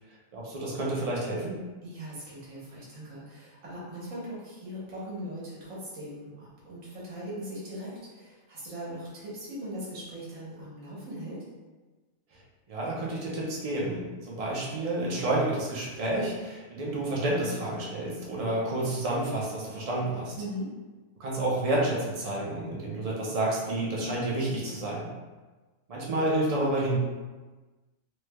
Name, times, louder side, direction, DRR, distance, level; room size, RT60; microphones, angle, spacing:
voice 1, 0.3-1.6 12.7-20.3 21.2-25.1 25.9-27.0, right 1 dB, 40° right, -4 dB, 0.5 m, -29 dB
voice 2, 1.8-11.4 20.4-20.7, equal, 75° right, -7 dB, 1.5 m, -40 dB
3.1 x 3.1 x 2.2 m, 1.3 s
omnidirectional pair, 1.4 m